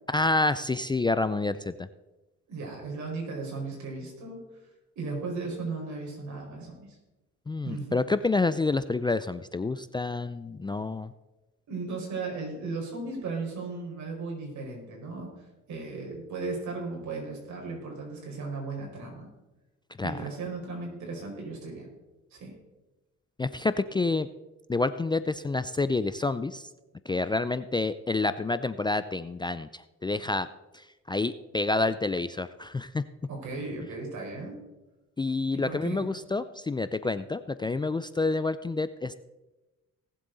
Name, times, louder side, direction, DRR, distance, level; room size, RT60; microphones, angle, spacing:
voice 1, 0.1-1.9 7.5-11.1 20.0-20.2 23.4-24.3 24.7-26.7 27.1-30.5 30.7-33.0 35.2-39.2, left 3 dB, 15° left, 12 dB, 0.4 m, -28 dB
voice 2, 2.5-4.4 4.9-7.0 7.6-8.0 11.7-19.3 20.0-21.9 22.3-22.5 33.3-34.5 35.5-36.1, right 3 dB, 70° right, -1 dB, 4.8 m, -36 dB
18.5 x 7.5 x 4.0 m, 1.1 s
cardioid pair, 90°, 30 cm